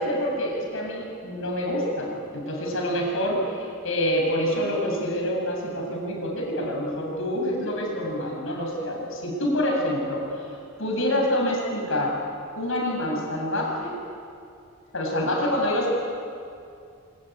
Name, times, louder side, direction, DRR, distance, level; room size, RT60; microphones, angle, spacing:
voice 1, 0.0-10.5 10.8-12.2 12.6-14.0 14.9-15.9, equal, 65° left, 0 dB, 7.8 m, -27 dB
25.5 x 23.5 x 9.5 m, 2.5 s
head